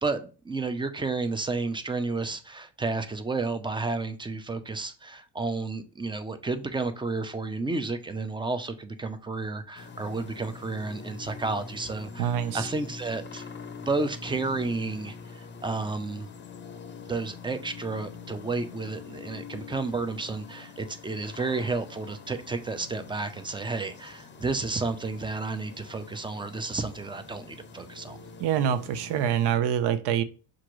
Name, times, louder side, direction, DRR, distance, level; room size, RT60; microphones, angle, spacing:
voice 1, 0.0-13.4 13.9-16.3 17.1-28.2, right 3 dB, 10° right, 0.4 m, -31 dB
sound 1, 9.8-29.6, left 4 dB, 25° left, 0.6 m, -44 dB
voice 2, 12.2-12.7 28.4-30.2, right 9 dB, 75° right, 0.6 m, -25 dB
5.7 x 2.6 x 3.0 m
cardioid pair, 90°, 42 cm